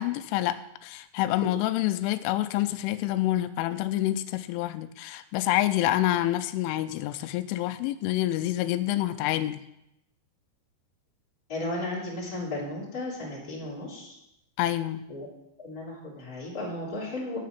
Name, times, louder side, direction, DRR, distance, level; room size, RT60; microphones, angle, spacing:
voice 1, 0.0-9.6 14.6-15.0, left 14 dB, 85° left, 10 dB, 3.1 m, -27 dB
voice 2, 11.5-14.1 15.1-15.3 15.6-17.4, left 2 dB, 25° left, -5 dB, 2.6 m, -34 dB
10.5 x 7.5 x 5.8 m, 0.83 s
omnidirectional pair, 5.6 m